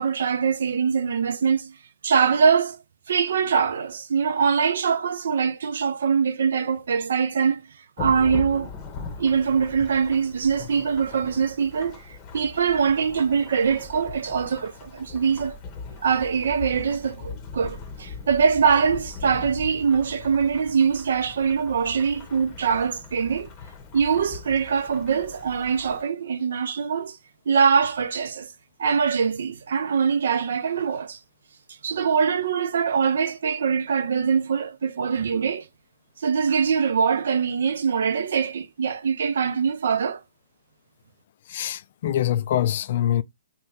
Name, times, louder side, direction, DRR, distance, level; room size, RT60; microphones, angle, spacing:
voice 1, 0.0-1.8 2.0-2.8 3.1-7.6 8.0-8.7 9.2-15.6 16.0-23.5 23.9-27.2 27.5-28.5 28.8-31.2 31.8-35.7 36.2-40.2, right 6 dB, 65° right, 0.4 m, -23 dB
Thunderstorm / Rain, 8.0-26.0, left 4 dB, 30° left, 0.7 m, -40 dB
voice 2, 41.5-43.2, left 11 dB, 55° left, 0.3 m, -24 dB
2.9 x 2.1 x 3.4 m
figure-of-eight pair, 125°, 0 cm